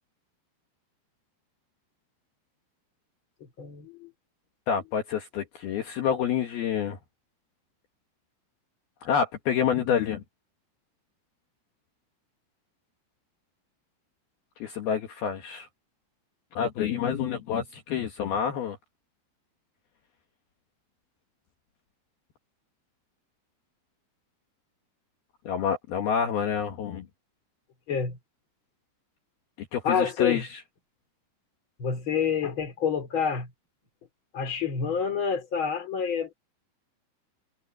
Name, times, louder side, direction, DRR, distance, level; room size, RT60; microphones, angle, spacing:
voice 1, 3.6-4.1 27.9-28.2 29.8-30.4 31.8-33.5 34.3-36.3, left 6 dB, 30° left, 3.5 m, -28 dB
voice 2, 4.7-7.0 9.0-10.2 14.6-15.7 16.5-18.8 25.4-27.1 29.6-30.6, left 8 dB, 60° left, 3.1 m, -28 dB
omnidirectional pair, 5.6 m